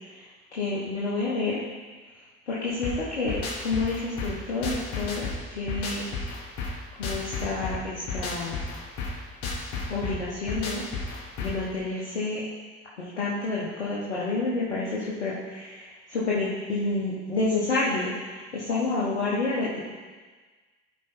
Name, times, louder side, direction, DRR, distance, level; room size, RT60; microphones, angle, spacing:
voice 1, 0.1-1.6 2.5-6.1 7.0-8.6 9.9-10.8 11.4-12.4 13.0-19.8, left 3 dB, 90° left, -7 dB, 1.2 m, -29 dB
sound 1, 2.8-11.7, left 3 dB, 70° left, 1.5 m, -33 dB
11.5 x 4.5 x 4.5 m, 1.4 s
hypercardioid pair, 55°, 34 cm